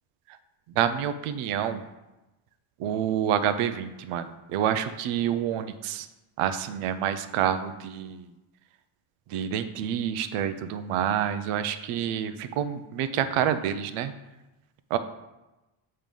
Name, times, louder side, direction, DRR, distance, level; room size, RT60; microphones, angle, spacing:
voice 1, 0.8-1.8 2.8-6.1 6.4-8.3 9.3-14.1 14.9-15.0, right 9 dB, 85° right, 11 dB, 0.6 m, -28 dB
7.4 x 3.3 x 5.3 m, 1.0 s
cardioid pair, 120°, 50 cm